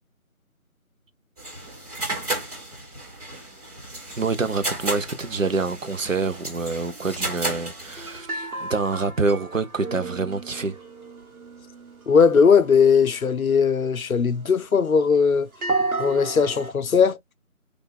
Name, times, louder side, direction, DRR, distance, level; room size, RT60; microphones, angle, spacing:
sound 1, 1.4-8.2, right 1 dB, 25° right, 2.1 m, -33 dB
voice 1, 4.2-10.8, right 4 dB, 65° right, 0.7 m, -26 dB
sound 2, 5.2-16.7, right 3 dB, 85° right, 1.2 m, -35 dB
voice 2, 12.1-15.5 16.0-17.2, left 6 dB, 75° left, 0.6 m, -19 dB
3.3 x 2.5 x 3.3 m
figure-of-eight pair, 165°, 43 cm